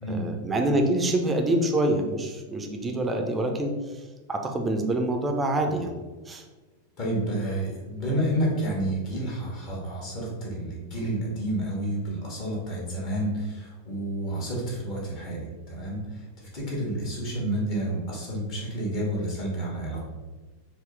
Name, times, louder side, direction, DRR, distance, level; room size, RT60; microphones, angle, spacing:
voice 1, 0.1-3.7 4.3-6.0 6.3-6.4, right 1 dB, 15° right, 3 dB, 0.4 m, -26 dB
voice 2, 7.0-20.0, right 1 dB, 40° left, -4 dB, 1.2 m, -30 dB
4.1 x 2.0 x 3.2 m, 1.3 s
figure-of-eight pair, 90°, 0 cm